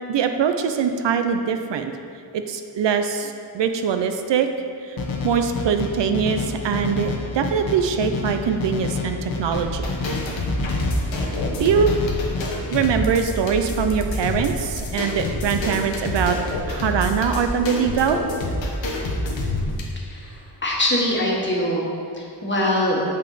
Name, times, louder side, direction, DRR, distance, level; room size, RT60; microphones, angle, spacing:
voice 1, 0.1-1.9 2.3-4.5 4.8-5.0 5.2-9.9 11.6-11.9 12.7-16.4 16.7-18.2, right 6 dB, 70° right, 7 dB, 0.5 m, -22 dB
sound 1, 5.0-12.4, left 3 dB, 50° left, 0.9 m, -29 dB
sound 2, 9.5-19.8, left 1 dB, 80° left, 1.1 m, -27 dB
voice 2, 20.1-21.8 22.1-23.0, left 1 dB, 25° left, -4 dB, 1.4 m, -23 dB
7.0 x 5.4 x 3.9 m, 2.4 s
wide cardioid pair, 110°, 44 cm